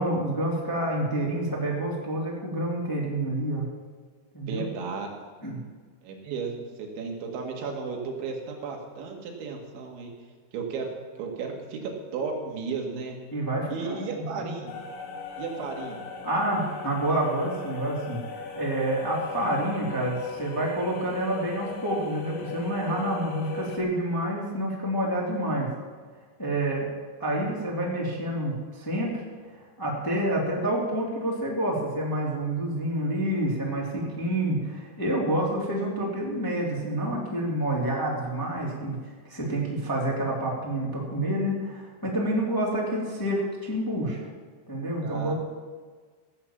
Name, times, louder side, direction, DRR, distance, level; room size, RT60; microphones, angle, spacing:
voice 1, 0.0-3.7 4.3-4.6 5.4-5.6 13.3-14.5 16.2-18.2 18.5-25.7 26.4-26.9 27.2-29.2 29.8-39.0 39.3-44.2 44.7-45.3, right 1 dB, 5° left, -3 dB, 1.8 m, -28 dB
voice 2, 4.5-5.2 6.0-10.1 10.5-13.2 13.7-14.8 15.4-16.0 45.0-45.3, right 5 dB, 90° right, 1 dB, 4.3 m, -34 dB
sound 1, 14.7-23.8, left 5 dB, 90° left, 3.8 m, -39 dB
16.5 x 8.7 x 7.3 m, 1.5 s
omnidirectional pair, 5.2 m